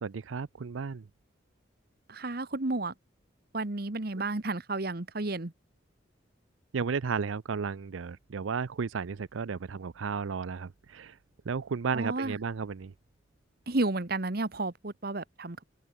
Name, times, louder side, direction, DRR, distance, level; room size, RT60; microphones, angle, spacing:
voice 1, 0.0-1.0 6.7-11.2 11.5-12.9, right 5 dB, 90° right, 0.5 m, -33 dB
voice 2, 2.1-2.9 3.5-5.5 11.9-12.4 13.7-15.6, right 2 dB, 50° right, 1.3 m, -32 dB
head